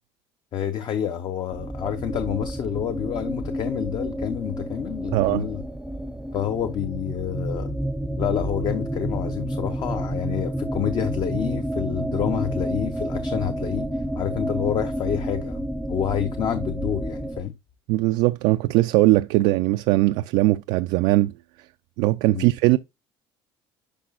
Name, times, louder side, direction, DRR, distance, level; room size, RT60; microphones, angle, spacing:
voice 1, 0.5-5.6 6.3-7.7 8.2-15.6 15.9-17.5 22.3-22.5, left 9 dB, 45° left, 0.7 m, -28 dB
sound 1, 1.5-17.4, right 1 dB, 5° right, 0.5 m, -30 dB
voice 2, 5.1-5.5 17.9-21.3 22.0-22.8, right 18 dB, 75° right, 0.4 m, -20 dB
10.5 x 4.8 x 2.4 m
cardioid pair, 135°, 11 cm